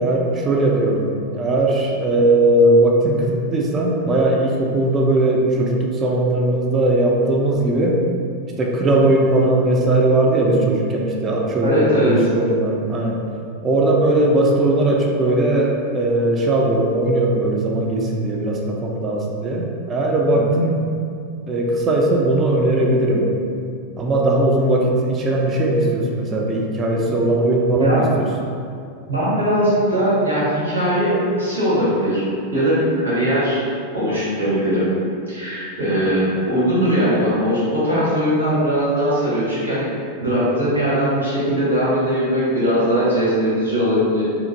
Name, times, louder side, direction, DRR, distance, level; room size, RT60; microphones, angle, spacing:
voice 1, 0.0-8.0 8.6-13.2 13.6-20.8 21.5-23.3 24.0-28.3, right 1 dB, 25° right, -1 dB, 0.4 m, -18 dB
voice 2, 11.6-12.2 20.3-20.6 27.0-27.1 27.8-28.0 29.1-32.2 32.5-33.6 33.9-34.9 35.3-39.8 40.2-44.2, equal, 85° right, -10 dB, 1.3 m, -20 dB
2.9 x 2.4 x 2.6 m, 2.4 s
figure-of-eight pair, 90°, 0 cm